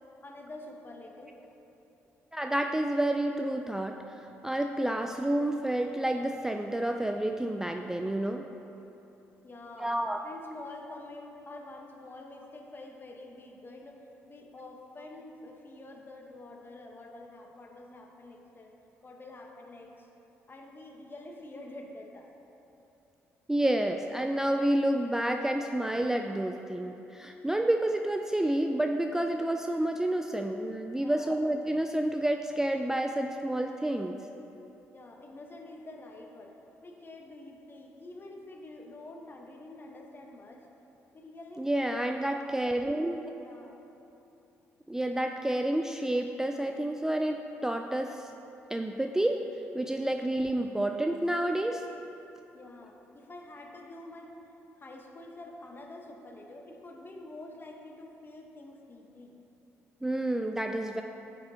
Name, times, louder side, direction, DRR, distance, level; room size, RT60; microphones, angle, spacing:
voice 1, 0.2-1.4 9.4-10.0 10.2-18.7 19.0-20.1 20.5-22.3 31.0-31.4 34.9-40.6 41.1-42.1 43.4-43.8 52.5-54.4 54.8-59.4, left 2 dB, 30° left, 1 dB, 1.0 m, -47 dB
voice 2, 2.3-8.4 9.8-10.3 23.5-34.3 41.6-43.2 44.9-48.3 48.7-49.4 49.7-51.9 60.0-61.0, right 1 dB, 10° right, 4 dB, 0.3 m, -29 dB
10.0 x 5.3 x 2.8 m, 3.0 s
hypercardioid pair, 55°, 7 cm